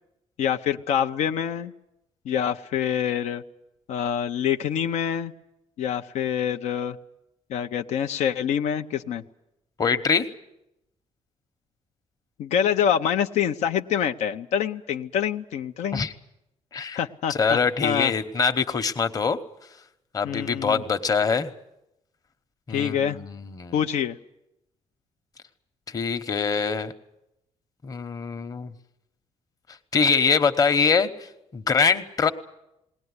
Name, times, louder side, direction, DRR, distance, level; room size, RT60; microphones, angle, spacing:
voice 1, 0.4-1.7 2.2-3.4 3.9-5.3 5.8-7.0 7.5-9.2 12.4-16.0 16.9-18.1 20.2-20.8 22.7-23.2 23.7-24.2, left 8 dB, 85° left, 7 dB, 0.7 m, -26 dB
voice 2, 9.8-10.3 15.9-16.1 16.7-17.0 17.3-19.4 20.1-21.5 22.7-23.8 25.9-26.9 27.8-28.7 29.9-31.1 31.5-32.3, left 5 dB, 30° left, 8 dB, 1.1 m, -23 dB
20.5 x 18.0 x 9.7 m, 0.87 s
cardioid pair, 140°, 12 cm